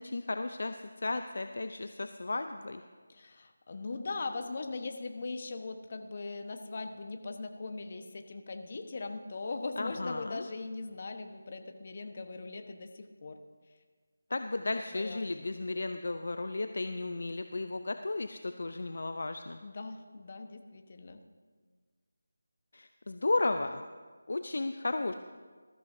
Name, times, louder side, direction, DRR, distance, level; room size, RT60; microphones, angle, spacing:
voice 1, 0.0-2.8 9.8-10.5 14.3-19.6 22.7-23.8 24.3-25.1, left 2 dB, 60° left, 8 dB, 0.6 m, -34 dB
voice 2, 3.1-13.4 14.9-15.3 19.6-21.2, left 3 dB, 40° left, 6 dB, 1.2 m, -40 dB
19.5 x 14.0 x 2.7 m, 1.5 s
figure-of-eight pair, 165°, 0 cm